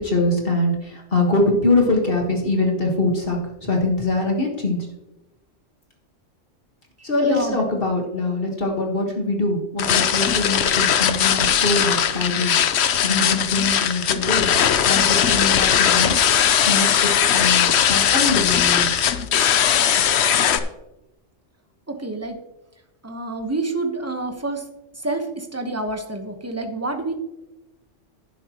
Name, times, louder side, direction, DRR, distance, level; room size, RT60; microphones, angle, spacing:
voice 1, 0.0-4.9 7.0-14.5 14.8-19.0, left 2 dB, 50° left, 0 dB, 1.8 m, -23 dB
voice 2, 7.0-7.6 21.9-22.4 23.0-24.6 25.0-27.1, right 2 dB, 15° right, 4 dB, 1.0 m, -28 dB
sound 1, 9.8-20.6, left 9 dB, 65° left, 0.9 m, -19 dB
11.5 x 10.5 x 3.0 m, 0.97 s
omnidirectional pair, 1.3 m